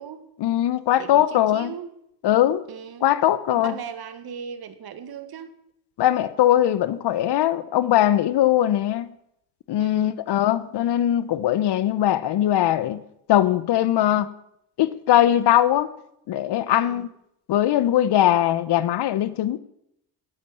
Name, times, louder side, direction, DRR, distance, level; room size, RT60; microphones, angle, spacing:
voice 1, 0.4-1.7 2.2-2.6 3.0-3.7 6.0-9.1 9.7-13.0 13.3-14.3 14.8-15.9 16.3-17.1 17.5-19.6, left 12 dB, 55° left, 1.0 m, -20 dB
voice 2, 1.0-1.9 2.7-3.1 3.5-5.5 9.8-10.2 14.0-14.3 16.7-17.1 18.1-18.4, right 7 dB, 50° right, 1.8 m, -38 dB
18.0 x 8.4 x 7.0 m
supercardioid pair, 70°, 49 cm